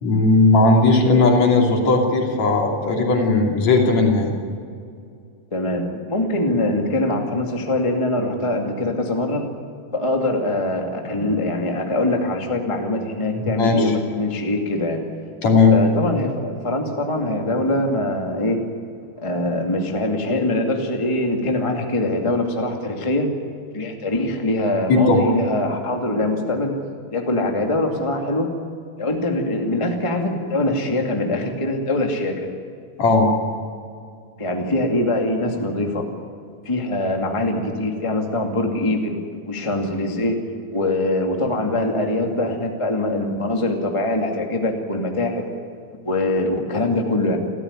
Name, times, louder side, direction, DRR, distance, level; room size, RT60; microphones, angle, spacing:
voice 1, 0.0-4.3 13.6-13.9 15.4-15.8 24.9-25.2 33.0-33.3, left 3 dB, 50° left, 1 dB, 3.8 m, -16 dB
voice 2, 5.5-9.4 9.9-15.0 15.7-18.6 19.2-23.3 23.7-26.8 27.1-28.5 29.0-32.5 34.4-36.0 36.6-39.2 39.4-40.4 40.7-45.4 46.0-47.4, left 1 dB, 15° left, 2 dB, 1.2 m, -23 dB
29.0 x 14.0 x 9.8 m, 2.4 s
omnidirectional pair, 4.4 m